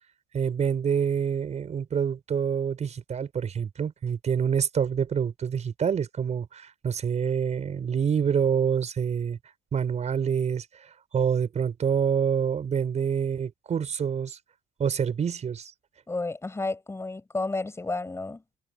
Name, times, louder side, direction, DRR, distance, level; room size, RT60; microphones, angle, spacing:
voice 1, 0.3-9.4 9.7-10.7 11.1-14.4 14.8-15.7, right 7 dB, 40° right, 5.6 m, -26 dB
voice 2, 16.1-18.4, left 3 dB, 15° left, 6.5 m, -31 dB
cardioid pair, 110°, 17 cm